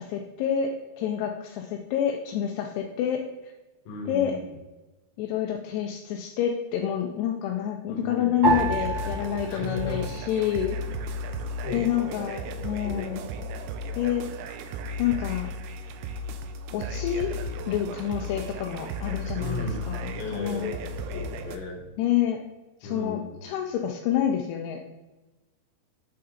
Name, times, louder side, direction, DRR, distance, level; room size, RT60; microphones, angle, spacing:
voice 1, 0.0-3.5 4.1-4.3 5.2-10.8 11.7-13.2 14.0-14.3 15.0-15.5 16.7-20.7 22.0-22.4 22.8-24.8, left 10 dB, 85° left, 2 dB, 2.7 m, -28 dB
voice 2, 3.9-4.5 7.9-8.4 9.5-10.1 11.6-12.5 12.8-13.3 19.4-19.8 20.1-21.8 22.8-23.4, left 2 dB, 70° left, -1 dB, 3.0 m, -36 dB
sound 1, 8.4-10.9 11.2-12.1 12.7-13.1, right 3 dB, 40° right, 0.9 m, -30 dB
sound 2, 8.5-21.6, equal, 80° right, 2.3 m, -35 dB
7.5 x 4.3 x 3.7 m, 1.1 s
omnidirectional pair, 4.7 m